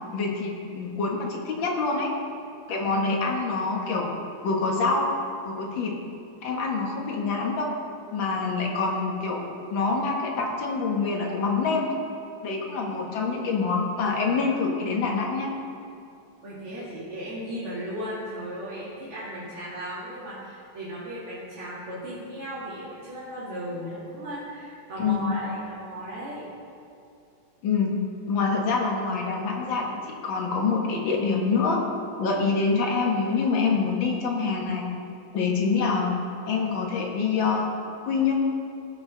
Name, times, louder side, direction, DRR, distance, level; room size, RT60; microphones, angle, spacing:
voice 1, 0.1-2.1 2.7-4.1 4.4-5.1 5.4-6.0 6.4-7.7 8.1-12.0 12.4-15.5 25.0-25.4 27.6-28.0 28.3-31.8 32.2-34.9 35.3-36.1 36.5-37.7 38.0-38.3, left 4 dB, 65° left, 0 dB, 2.1 m, -26 dB
voice 2, 16.4-26.4, equal, 90° right, -10 dB, 3.2 m, -36 dB
16.0 x 6.6 x 3.9 m, 2.6 s
omnidirectional pair, 2.4 m